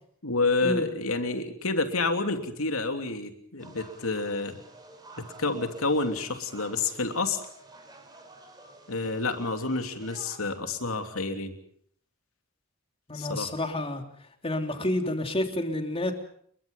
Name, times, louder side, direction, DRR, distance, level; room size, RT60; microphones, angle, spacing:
voice 1, 0.2-4.6 5.2-7.4 8.9-11.6 13.1-13.5, left 3 dB, 80° left, 6 dB, 3.1 m, -29 dB
sound 1, 3.6-10.4, right 2 dB, 20° right, 5.1 m, -50 dB
voice 2, 13.1-14.0 14.4-16.1, left 1 dB, 30° left, 5 dB, 3.3 m, -29 dB
29.0 x 22.5 x 5.4 m, 0.63 s
head